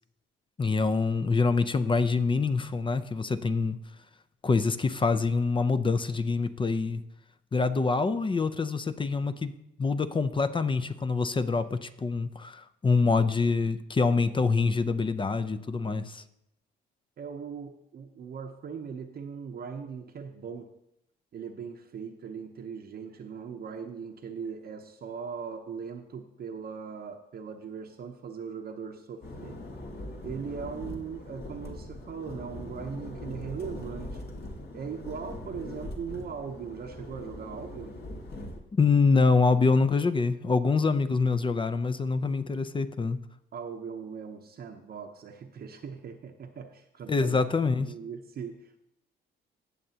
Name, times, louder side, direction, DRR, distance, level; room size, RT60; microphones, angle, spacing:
voice 1, 0.6-3.8 4.4-7.0 7.5-9.5 9.8-16.2 38.8-43.2 47.1-47.9, left 4 dB, 25° left, 11 dB, 0.5 m, -25 dB
voice 2, 17.2-20.7 21.3-29.6 30.2-34.2 34.7-38.0 43.5-47.4 47.9-48.8, right 6 dB, 50° right, 3 dB, 0.8 m, -39 dB
sound 1, 29.2-38.6, left 1 dB, 55° left, 1.7 m, -41 dB
16.5 x 6.7 x 2.8 m, 0.82 s
cardioid pair, 90°, 20 cm